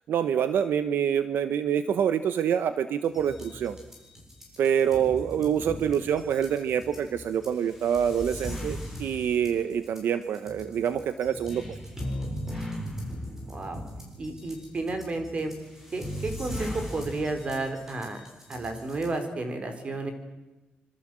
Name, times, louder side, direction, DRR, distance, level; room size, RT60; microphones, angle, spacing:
voice 1, 0.1-3.8 4.6-11.6, right 8 dB, 75° right, 11 dB, 1.1 m, -26 dB
sound 1, 3.0-19.2, equal, 10° right, 7.5 m, -39 dB
voice 2, 13.5-13.8 14.2-15.5 15.9-20.1, right 2 dB, 35° right, 7 dB, 4.3 m, -32 dB
26.0 x 26.0 x 7.7 m, 1.1 s
wide cardioid pair, 150°, 4 cm